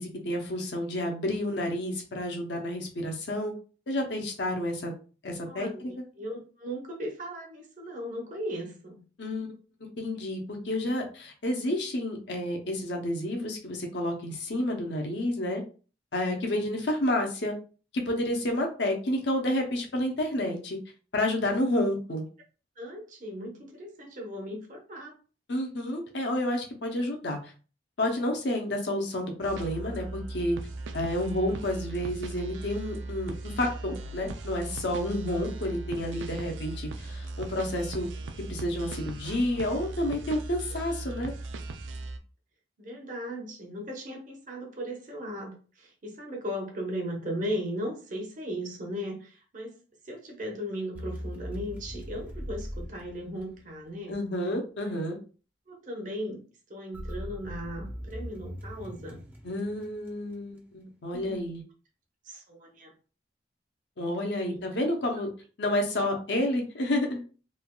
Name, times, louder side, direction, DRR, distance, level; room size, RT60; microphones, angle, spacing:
voice 1, 0.0-3.5 3.9-4.9 5.2-5.9 9.2-9.5 10.0-15.6 16.1-17.5 17.9-20.8 21.1-22.2 25.5-27.4 28.0-30.6 30.9-38.1 38.5-41.3 54.1-55.2 59.4-61.6 64.0-65.3 65.6-67.2, left 1 dB, 70° left, 2 dB, 0.7 m, -30 dB
voice 2, 5.4-5.8 6.2-9.0 22.8-25.2 42.8-49.8 50.0-54.2 54.8-54.9 55.7-56.4 56.7-59.2 61.1-61.4 62.2-62.9 64.5-64.6, equal, 45° right, 1 dB, 0.8 m, -37 dB
sound 1, 29.4-42.2, right 2 dB, 85° right, 0.4 m, -38 dB
sound 2, 50.9-53.9 56.9-60.4, equal, 10° right, 0.4 m, -40 dB
3.3 x 2.4 x 2.2 m, 0.37 s
head